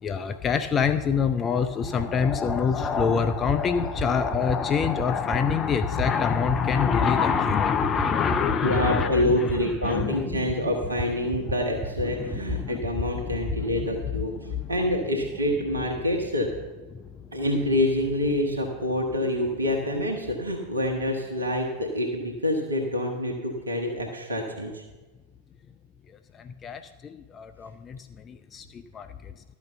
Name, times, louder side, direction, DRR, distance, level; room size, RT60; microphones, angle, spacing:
voice 1, 0.0-10.5 11.4-11.5 12.1-12.8 13.3-13.9 14.4-14.6 16.9-17.3 26.3-29.3, left 6 dB, 25° left, 9 dB, 0.4 m, -26 dB
sound 1, 1.8-2.0 2.3-2.5 2.8-3.0 3.3-3.5 3.8-4.0 4.3-4.5 4.8-5.0 5.3-5.5 5.8-6.0 6.3-6.5 6.8-7.0 7.3-7.5 7.8-8.0 8.3-8.5 8.8-9.0 9.3-9.5 9.8-10.0 10.3-10.5 10.8-11.0 11.3-11.5 11.8-12.0 12.3-12.5 12.8-13.0 13.3-13.5, right 2 dB, 35° right, 2.0 m, -32 dB
voice 2, 8.6-16.5 17.3-24.8, left 1 dB, 75° right, 2 dB, 1.0 m, -27 dB
12.0 x 5.1 x 6.7 m, 1.2 s
figure-of-eight pair, 90°, 0 cm